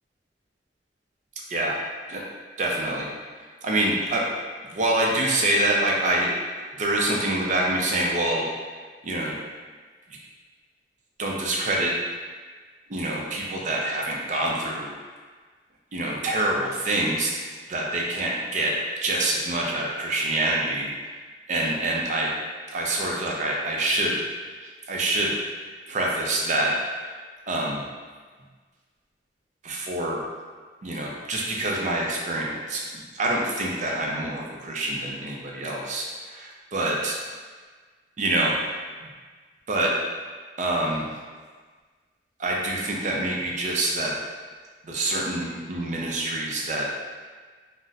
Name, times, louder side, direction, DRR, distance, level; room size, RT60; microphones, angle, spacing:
voice 1, 1.5-1.8 2.1-2.2 2.6-4.2 4.7-6.3 6.8-8.5 9.0-9.3 10.1-10.2 11.2-11.9 12.9-14.9 15.9-17.3 17.7-18.7 19.0-20.9 21.5-22.3 22.7-24.2 24.6-25.3 25.9-26.7 27.5-27.8 29.6-30.2 30.8-37.2 38.2-38.5 39.0-39.1 39.7-39.9 40.6-41.1 42.4-44.1 44.8-46.9, right 1 dB, 45° right, -2 dB, 0.5 m, -26 dB
4.0 x 2.0 x 2.4 m, 1.5 s
head